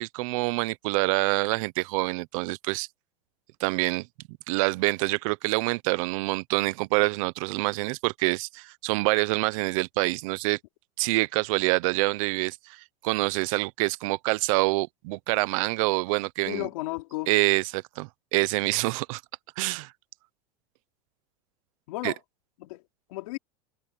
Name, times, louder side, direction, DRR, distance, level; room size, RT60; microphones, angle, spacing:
voice 1, 0.0-2.9 3.6-4.1 4.5-10.6 11.0-16.7 17.3-19.2 19.6-19.9 22.0-22.1, right 24 dB, 65° right, 0.8 m, -26 dB
voice 2, 16.4-17.3 21.9-22.2 22.6-22.8 23.1-23.4, left 20 dB, 75° left, 3.3 m, -33 dB
supercardioid pair, 135°, 18 cm